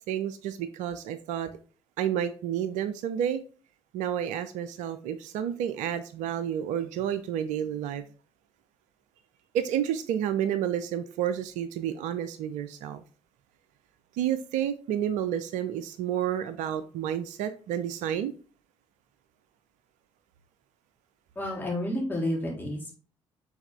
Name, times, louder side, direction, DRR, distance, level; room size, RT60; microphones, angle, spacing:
voice 1, 0.1-1.5 2.0-3.4 3.9-8.0 9.5-13.0 14.1-18.3, right 10 dB, 60° right, 0.5 m, -30 dB
voice 2, 21.3-22.9, left 1 dB, 15° left, 3.4 m, -30 dB
7.1 x 4.2 x 3.4 m
figure-of-eight pair, 45°, 14 cm